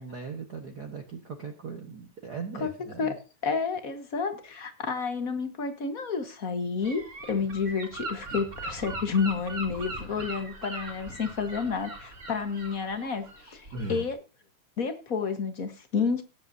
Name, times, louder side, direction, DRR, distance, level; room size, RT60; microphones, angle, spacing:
voice 1, 0.0-3.1 13.7-14.1, right 4 dB, 45° right, 4 dB, 1.3 m, -38 dB
voice 2, 3.4-14.2 14.8-16.2, left 5 dB, 45° left, 8 dB, 1.2 m, -30 dB
Gull seagull / Wind, 6.8-14.1, right 2 dB, 30° right, 1.8 m, -40 dB
18.5 x 8.9 x 2.7 m, 0.32 s
omnidirectional pair, 3.4 m